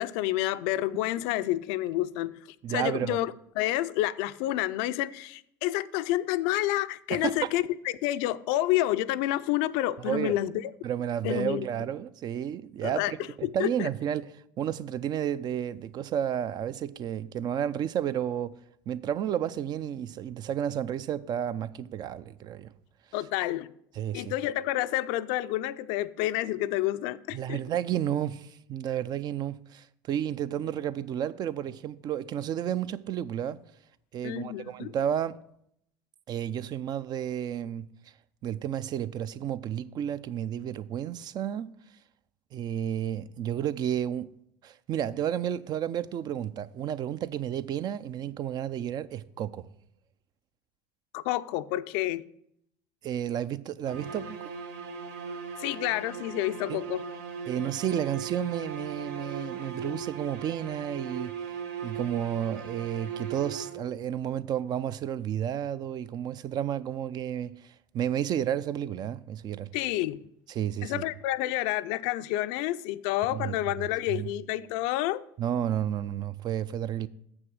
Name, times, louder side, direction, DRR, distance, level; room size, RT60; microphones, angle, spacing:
voice 1, 0.0-7.6 8.0-10.7 11.2-11.7 12.8-13.1 13.4-13.9 23.1-23.7 24.1-27.6 34.2-34.9 51.1-52.2 55.6-57.0 69.7-70.2 70.8-75.2, left 15 dB, 65° left, 0.4 m, -29 dB
voice 2, 2.6-3.2 7.1-7.5 10.0-10.4 10.8-18.5 18.9-22.7 23.9-24.3 27.3-33.6 34.1-35.4 36.3-37.9 38.4-41.7 42.5-44.3 44.6-49.7 53.0-54.4 56.7-56.8 57.5-61.5 61.8-69.7 70.5-71.0 73.3-74.3 75.4-77.1, right 10 dB, 45° right, 0.4 m, -32 dB
sound 1, 53.8-64.1, right 6 dB, 75° right, 0.8 m, -38 dB
7.1 x 6.1 x 6.1 m
hypercardioid pair, 80°, 10 cm